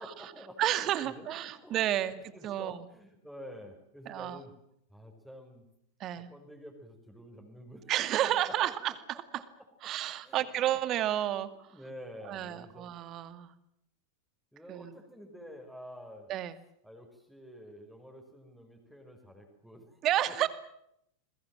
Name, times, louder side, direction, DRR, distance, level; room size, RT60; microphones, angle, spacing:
voice 1, 0.0-4.5 4.9-5.7 6.0-7.9 8.2-9.0 9.8-9.9 10.2-10.5 11.4-12.9 14.5-16.3 16.8-20.0 20.3-20.4, equal, ahead, 3 dB, 5.2 m, -49 dB
voice 2, 0.6-2.2 2.4-2.8 4.1-4.4 6.0-6.3 7.9-8.9 9.8-11.7 12.3-13.5 14.7-14.9 16.3-16.6 20.0-20.5, right 12 dB, 35° right, 13 dB, 2.2 m, -31 dB
28.5 x 22.0 x 7.6 m, 0.76 s
figure-of-eight pair, 90°, 0 cm